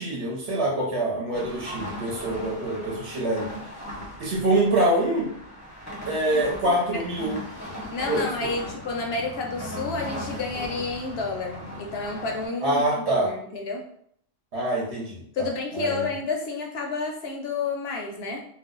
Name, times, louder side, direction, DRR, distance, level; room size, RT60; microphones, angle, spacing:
voice 1, 0.0-3.5 4.2-5.3 6.1-7.4 8.1-8.2 12.6-13.3 14.5-15.5 15.7-16.1, right 1 dB, 65° right, -4 dB, 1.0 m, -25 dB
sound 1, 1.3-12.5, equal, 15° left, 0.7 m, -38 dB
voice 2, 6.3-7.0 7.9-13.9 15.3-18.4, left 3 dB, 65° left, 1 dB, 0.7 m, -30 dB
2.4 x 2.1 x 3.7 m, 0.66 s
omnidirectional pair, 1.3 m